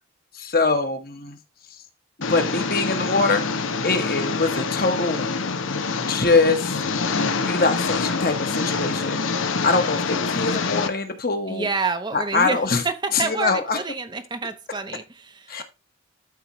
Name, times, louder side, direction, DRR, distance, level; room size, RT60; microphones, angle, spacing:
voice 1, 0.3-1.4 2.3-3.4 3.8-5.3 6.1-6.8 7.4-9.2 9.6-11.7 12.1-12.8 13.1-13.8 15.5-15.6, left 3 dB, 50° left, 1.4 m, -23 dB
Engine, 2.2-10.9, left 4 dB, 90° left, 0.9 m, -26 dB
voice 2, 11.5-15.6, right 4 dB, 25° right, 0.7 m, -28 dB
12.5 x 4.5 x 3.1 m
head